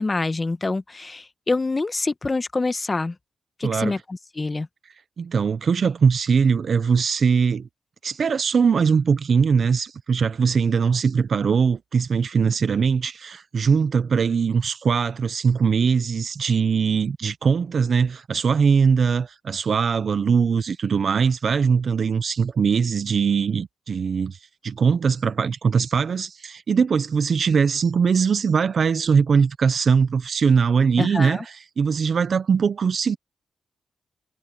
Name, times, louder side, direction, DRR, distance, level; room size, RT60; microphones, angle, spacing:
voice 1, 0.0-3.1 3.6-4.7 31.0-31.4, left 3 dB, 30° left, 1.3 m, -26 dB
voice 2, 3.6-4.0 5.2-7.7 8.0-24.4 24.6-33.2, right 6 dB, 60° right, 0.8 m, -21 dB
cardioid pair, 65°, 0 cm